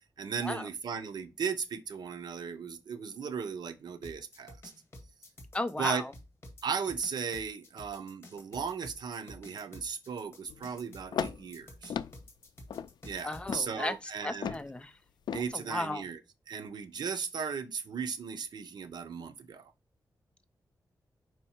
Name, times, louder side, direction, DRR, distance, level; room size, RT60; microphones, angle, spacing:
voice 1, 0.2-4.6 5.8-6.0 6.6-11.9 13.0-14.6 15.3-16.2 16.5-19.7, right 6 dB, 75° right, 0.8 m, -36 dB
sound 1, 4.0-13.5, left 1 dB, 35° left, 1.9 m, -50 dB
voice 2, 5.5-6.1 13.2-13.9 14.2-14.9 15.5-16.0, left 2 dB, 15° left, 0.5 m, -34 dB
sound 2, 10.5-10.7 11.1-11.5 11.9-12.2 12.7-12.9 13.5-13.7 14.4-14.7 15.3-15.5, left 8 dB, 80° left, 0.4 m, -35 dB
5.5 x 4.6 x 4.4 m
wide cardioid pair, 165°, 7 cm